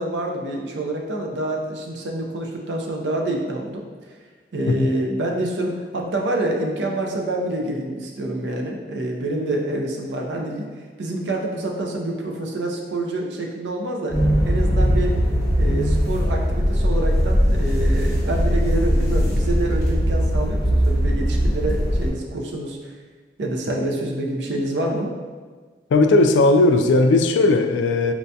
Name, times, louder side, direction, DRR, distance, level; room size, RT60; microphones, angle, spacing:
voice 1, 0.0-3.8 4.5-10.7 11.0-14.2 14.5-15.2 15.6-22.8 23.4-25.1, right 1 dB, 80° right, 1 dB, 0.5 m, -27 dB
sound 1, 14.1-22.1, equal, 20° left, 0.8 m, -20 dB
voice 2, 25.9-28.1, left 2 dB, 90° left, 6 dB, 0.3 m, -17 dB
4.5 x 2.6 x 2.2 m, 1.5 s
head